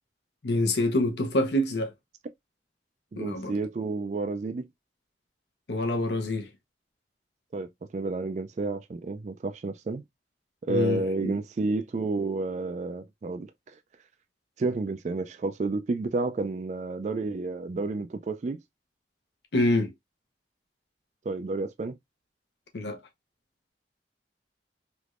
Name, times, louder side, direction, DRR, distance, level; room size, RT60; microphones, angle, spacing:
voice 1, 0.4-1.9 3.2-3.5 5.7-6.5 10.7-11.3 19.5-19.9 22.7-23.0, left 1 dB, 75° left, 0.8 m, -26 dB
voice 2, 3.1-4.7 7.5-10.0 10.6-13.5 14.6-18.6 21.3-22.0, right 3 dB, 40° right, 0.3 m, -30 dB
3.4 x 3.0 x 2.4 m
head